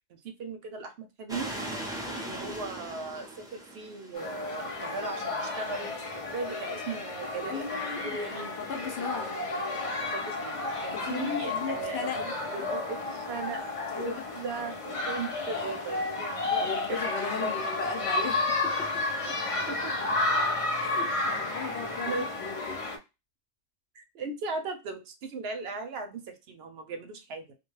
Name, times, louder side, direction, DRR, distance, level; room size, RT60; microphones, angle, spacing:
voice 1, 0.1-1.5 2.2-6.0 6.3-8.6 10.0-13.6 14.0-17.0 17.3-17.5 19.3-19.4 19.7-20.1 21.6-21.7 22.1-22.3 24.0-27.6, right 3 dB, 65° right, 0.7 m, -37 dB
sound 1, 1.3-4.6, right 1 dB, 5° right, 0.5 m, -39 dB
sound 2, 4.1-23.0, left 2 dB, 45° left, 0.4 m, -32 dB
voice 2, 7.5-8.2 8.6-9.4 10.9-12.2 13.9-14.3 16.6-19.0 20.8-22.9, left 6 dB, 70° left, 0.9 m, -37 dB
2.3 x 2.2 x 3.0 m
omnidirectional pair, 1.2 m